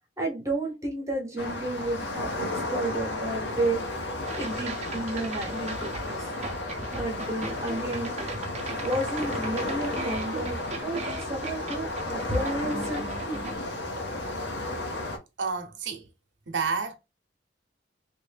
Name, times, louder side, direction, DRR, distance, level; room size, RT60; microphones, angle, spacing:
voice 1, 0.2-3.8 4.4-6.3 7.0-13.4, right 2 dB, 15° right, 1.0 m, -32 dB
sound 1, 1.4-15.2, left 2 dB, 70° left, 0.9 m, -33 dB
sound 2, 4.2-13.6, right 2 dB, 35° right, 0.7 m, -38 dB
voice 2, 15.4-16.0 16.5-17.0, right 5 dB, 85° right, 0.7 m, -29 dB
3.4 x 2.6 x 3.3 m
head